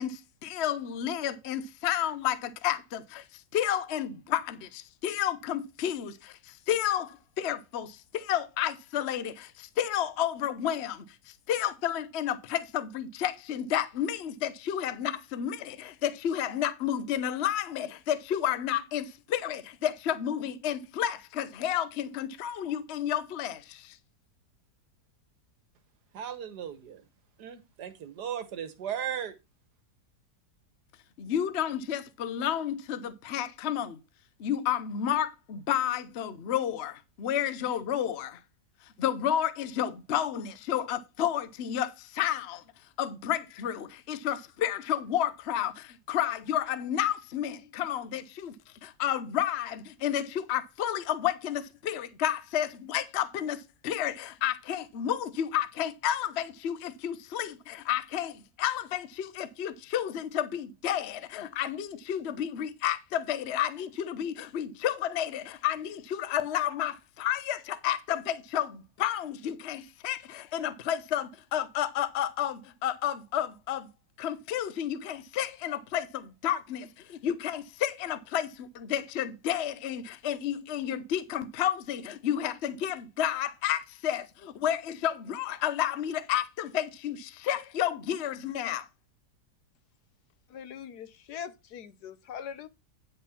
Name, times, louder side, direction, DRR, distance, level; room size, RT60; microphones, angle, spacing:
voice 1, 0.0-24.0 31.2-34.0 34.4-38.4 39.0-42.6 43.0-48.6 48.8-73.9 74.2-88.9, left 10 dB, 50° left, 0.8 m, -31 dB
voice 2, 26.1-27.0 27.4-29.4, right 9 dB, 70° right, 1.7 m, -36 dB
voice 3, 90.5-92.7, left 8 dB, 70° left, 1.4 m, -42 dB
10.0 x 4.2 x 5.8 m
omnidirectional pair, 1.8 m